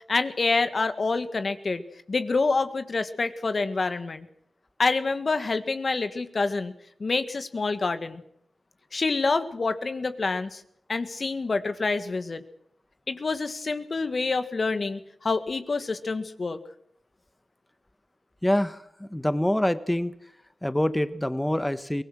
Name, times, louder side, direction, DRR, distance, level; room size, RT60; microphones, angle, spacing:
voice 1, 0.1-1.8 2.1-4.3 4.8-6.7 7.0-8.2 8.9-10.6 10.9-12.4 13.1-16.6, left 3 dB, 55° left, 10 dB, 1.9 m, -27 dB
voice 2, 18.4-20.2 20.6-22.0, left 1 dB, 10° left, 13 dB, 1.3 m, -26 dB
23.5 x 18.5 x 6.3 m, 0.70 s
cardioid pair, 55°, 0 cm